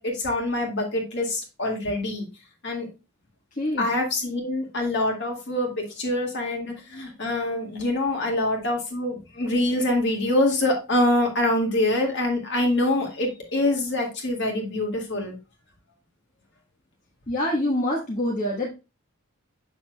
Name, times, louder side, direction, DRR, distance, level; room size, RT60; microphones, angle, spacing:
voice 1, 0.0-2.3 2.6-2.9 3.8-15.4, left 1 dB, 55° left, 1 dB, 1.9 m, -25 dB
voice 2, 3.6-3.9 17.3-18.7, left 1 dB, 35° left, -4 dB, 1.3 m, -25 dB
7.2 x 6.4 x 2.2 m, 0.27 s
head